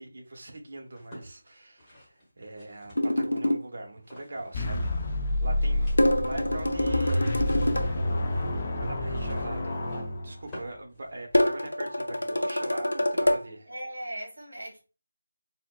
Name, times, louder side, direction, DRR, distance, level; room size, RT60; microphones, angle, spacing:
voice 1, 0.0-7.5 8.8-9.7 10.2-13.7, right 2 dB, 50° right, 0.8 m, -41 dB
sound 1, 0.9-3.4 4.0-4.9 5.2-5.3 5.6-11.7, equal, 10° left, 1.1 m, -50 dB
sound 2, 3.0-3.7 6.0-7.9 11.3-13.4, left 1 dB, 90° left, 0.5 m, -25 dB
sound 3, 4.5-10.7, left 1 dB, 30° left, 0.5 m, -29 dB
voice 2, 5.6-5.9 13.7-14.9, right 1 dB, 70° right, 1.0 m, -39 dB
3.8 x 2.1 x 2.3 m
figure-of-eight pair, 165°, 0 cm